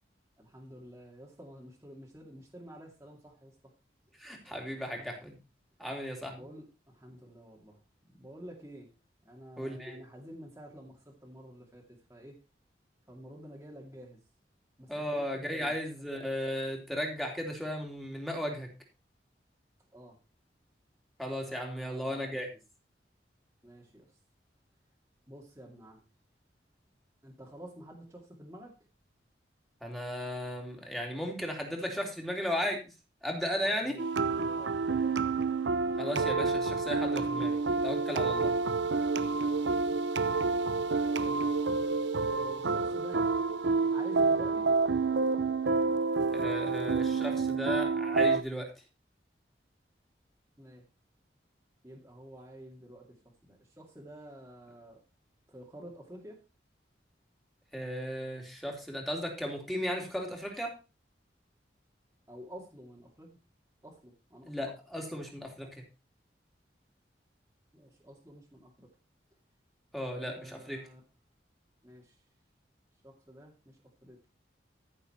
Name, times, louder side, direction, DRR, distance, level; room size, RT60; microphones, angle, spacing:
voice 1, 0.4-3.5 4.7-5.1 6.3-7.8 8.2-8.9 9.3-11.8 12.1-12.4 13.1-14.2 14.8-15.7 19.9-20.2 21.4-22.4 23.6-24.0 25.3-26.0 27.2-28.7 33.6-34.1 34.4-35.2 39.5-40.0 41.2-41.5 42.2-43.2 43.9-44.7 50.6-50.8 51.8-53.0 53.4-55.0 55.5-56.4 62.3-63.3 63.8-64.7 67.7-68.9 70.1-71.0 71.8-72.1 73.0-73.8 74.0-74.2, equal, 15° right, -2 dB, 2.2 m, -49 dB
voice 2, 4.2-5.4 5.8-6.5 9.6-10.0 14.9-18.7 21.2-22.5 29.8-32.8 33.2-34.0 36.0-37.5 37.8-38.6 46.3-48.7 57.7-60.7 64.5-65.7 69.9-70.8, equal, ahead, 0 dB, 3.0 m, -35 dB
sound 1, 34.0-48.4, right 4 dB, 85° right, 0.7 m, -28 dB
14.5 x 6.9 x 4.4 m, 0.30 s
head